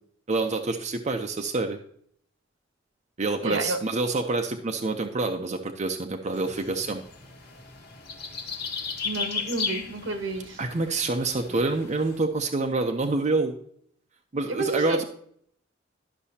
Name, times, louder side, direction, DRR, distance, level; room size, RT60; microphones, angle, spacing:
voice 1, 0.3-1.8 3.2-7.0 10.6-13.6 14.3-15.0, right 3 dB, 40° right, 4 dB, 0.6 m, -27 dB
voice 2, 3.4-3.8 9.0-10.5 14.5-15.0, right 3 dB, 75° right, 7 dB, 1.2 m, -30 dB
sound 1, 6.3-12.2, left 5 dB, 55° left, 1.3 m, -36 dB
12.0 x 6.0 x 2.8 m, 0.64 s
head